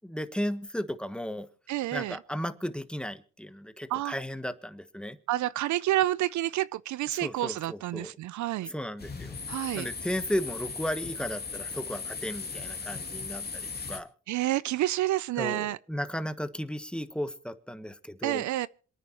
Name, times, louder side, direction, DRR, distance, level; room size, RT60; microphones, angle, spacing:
voice 1, 0.0-1.5 1.9-5.2 7.1-8.1 8.6-9.3 9.7-14.1 15.4-18.5, equal, 5° left, 1.3 m, -35 dB
voice 2, 1.7-2.2 3.9-4.1 5.3-8.7 9.5-9.9 14.3-15.8 18.2-18.7, right 15 dB, 75° right, 0.5 m, -29 dB
sound 1, 9.0-14.0, left 5 dB, 30° left, 2.5 m, -37 dB
27.0 x 9.5 x 3.0 m
cardioid pair, 90°, 30 cm